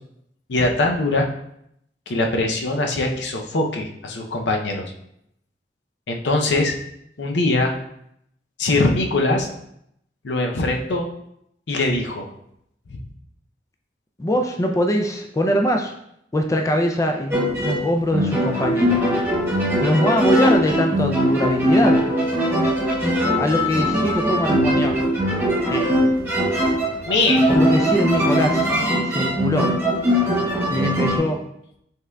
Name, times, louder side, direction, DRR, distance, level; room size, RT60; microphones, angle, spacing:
voice 1, 0.5-1.3 2.1-4.9 6.1-6.7 7.2-7.7 8.6-9.5 10.2-11.1 11.7-12.3 27.1-27.6, left 2 dB, 80° left, 2 dB, 0.6 m, -22 dB
voice 2, 14.2-15.9 16.3-19.0 19.8-22.0 23.4-25.0 25.7-25.8 27.5-28.7 29.0-29.7 30.7-31.4, equal, 20° left, 3 dB, 0.3 m, -22 dB
sound 1, 17.3-31.2, equal, 10° right, 1.0 m, -20 dB
5.3 x 3.6 x 2.2 m, 0.74 s
head